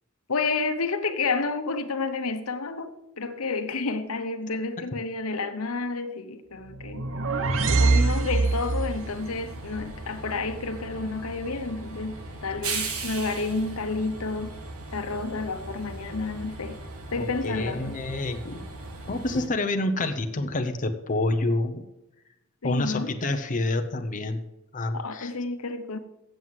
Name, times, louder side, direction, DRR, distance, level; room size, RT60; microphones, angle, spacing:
voice 1, 0.3-7.0 7.8-14.6 14.9-16.8 17.1-17.9 22.6-23.1 24.9-26.0, left 3 dB, 80° left, 1.0 m, -30 dB
sound 1, 6.7-9.0, right 3 dB, 65° right, 0.9 m, -23 dB
Train, 8.2-19.5, right 3 dB, 85° right, 1.8 m, -38 dB
voice 2, 17.2-18.7 19.1-21.8 22.6-24.4 24.7-25.3, left 2 dB, 40° left, 0.7 m, -28 dB
7.8 x 7.7 x 7.5 m
head